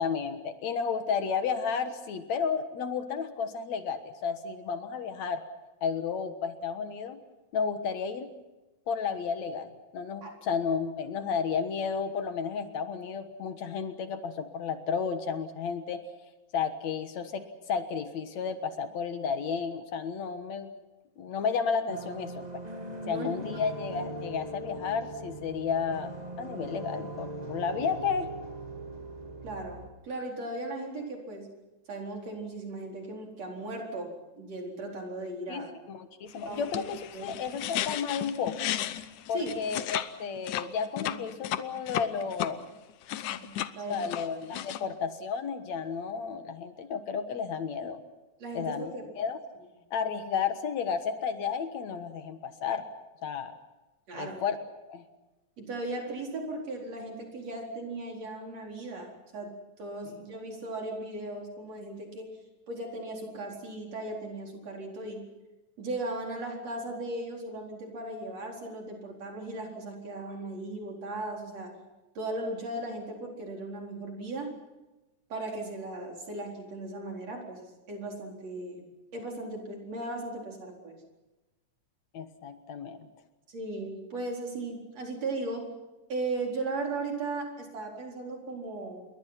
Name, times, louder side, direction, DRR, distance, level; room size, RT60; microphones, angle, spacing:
voice 1, 0.0-5.4 5.8-7.2 7.5-8.3 8.9-16.0 16.5-20.7 21.2-22.5 23.1-26.1 26.4-28.3 35.5-38.7 39.3-42.7 43.9-48.0 48.5-49.4 49.9-52.9 53.2-53.5 54.1-54.6 54.9-55.0 60.1-60.2 82.1-83.1, left 6 dB, 70° left, 8 dB, 2.6 m, -32 dB
sound 1, 21.9-29.9, right 2 dB, 15° right, 1.8 m, -40 dB
voice 2, 23.0-23.6 29.4-31.5 31.9-34.1 34.4-35.7 36.5-36.6 37.1-37.3 39.3-39.6 41.1-41.2 43.4-44.1 44.7-44.9 48.4-49.0 54.1-54.4 55.6-62.3 62.7-65.3 65.8-71.7 72.2-74.5 75.3-78.8 79.1-81.0 83.5-85.7 86.1-89.1, right 2 dB, 60° right, 0 dB, 5.4 m, -37 dB
sound 2, 36.5-40.1 40.4-42.5 42.9-44.8, left 13 dB, 85° left, 2.4 m, -34 dB
28.0 x 22.5 x 5.9 m, 1.1 s
omnidirectional pair, 3.4 m